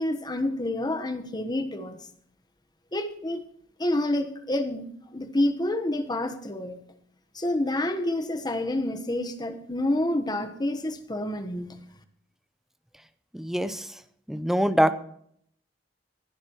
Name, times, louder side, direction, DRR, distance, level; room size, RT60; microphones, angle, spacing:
voice 1, 0.0-2.0 2.9-3.4 3.8-6.8 7.3-11.8, left 1 dB, 20° left, 8 dB, 1.1 m, -28 dB
voice 2, 13.3-13.9 14.3-14.9, equal, ahead, 11 dB, 0.6 m, -24 dB
22.5 x 10.5 x 3.0 m, 0.66 s
head